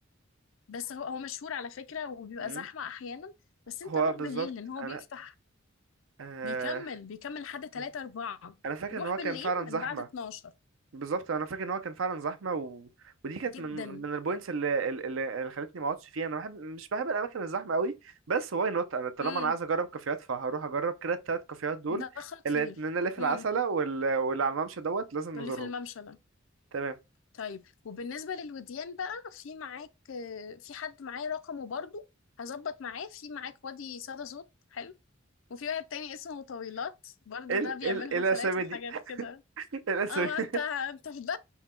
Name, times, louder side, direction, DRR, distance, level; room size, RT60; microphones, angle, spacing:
voice 1, 0.7-3.3 3.7-5.3 6.4-8.6 8.9-10.5 13.4-14.1 19.2-19.5 21.9-22.8 23.2-23.5 25.3-26.2 27.3-32.0 32.4-34.4 34.7-34.9 35.5-39.4 40.1-41.4, left 6 dB, 70° left, 0.5 m, -38 dB
voice 2, 3.8-4.5 4.8-5.0 6.2-6.8 8.6-10.1 10.9-12.9 13.2-17.9 18.3-22.0 22.4-25.7 26.7-27.0 37.5-39.0 39.7-40.5, right 4 dB, 70° right, 0.6 m, -31 dB
5.5 x 2.2 x 4.3 m
head